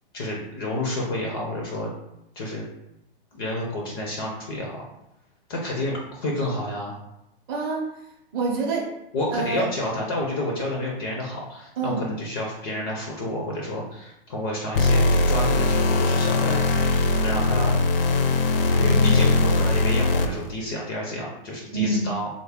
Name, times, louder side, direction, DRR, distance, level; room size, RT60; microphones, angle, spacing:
voice 1, 0.1-1.9 2.4-2.6 3.3-4.8 5.5-7.0 9.1-16.6 17.2-17.8 18.7-22.3, left 1 dB, 25° left, -2 dB, 0.4 m, -30 dB
voice 2, 7.5-7.9 8.3-8.9 9.3-9.6 11.8-12.0 21.7-22.1, right 3 dB, 25° right, -1 dB, 0.6 m, -26 dB
sound 1, 14.8-20.5, left 2 dB, 70° left, 0.5 m, -20 dB
3.4 x 2.0 x 3.4 m, 0.85 s
hypercardioid pair, 155°, 29 cm